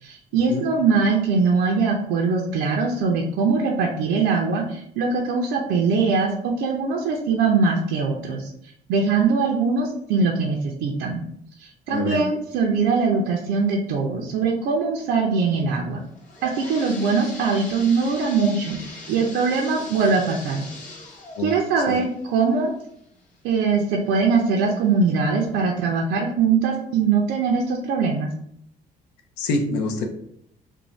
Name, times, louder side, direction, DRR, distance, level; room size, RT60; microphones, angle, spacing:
voice 1, 0.0-8.5 8.9-11.2 11.6-16.0 16.4-18.8 19.1-20.7 21.4-22.7 23.4-28.3, right 4 dB, 85° right, -1 dB, 0.4 m, -22 dB
voice 2, 11.9-12.2 21.4-21.5 21.9-22.0 29.4-30.1, left 2 dB, 85° left, 4 dB, 0.5 m, -25 dB
sound 1, 16.0-23.6 24.1-24.2 24.9-25.0 25.4-25.5, left 2 dB, 50° left, 0.8 m, -41 dB
2.5 x 2.1 x 3.1 m, 0.70 s
cardioid pair, 110°, 17 cm